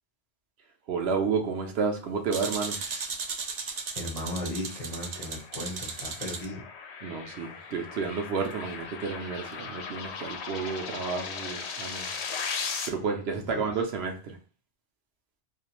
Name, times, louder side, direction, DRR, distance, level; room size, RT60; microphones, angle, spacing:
voice 1, 0.9-2.8 7.0-12.1 12.8-14.4, right 5 dB, 70° right, 4 dB, 0.8 m, -31 dB
sound 1, 2.3-6.4, right 5 dB, 55° right, 0.5 m, -36 dB
voice 2, 2.7-3.1 4.0-6.6 13.3-13.7, left 1 dB, 40° left, -1 dB, 0.8 m, -37 dB
sound 2, 4.0-12.9, left 5 dB, 80° left, 0.8 m, -38 dB
2.5 x 2.4 x 2.9 m, 0.38 s
omnidirectional pair, 1.1 m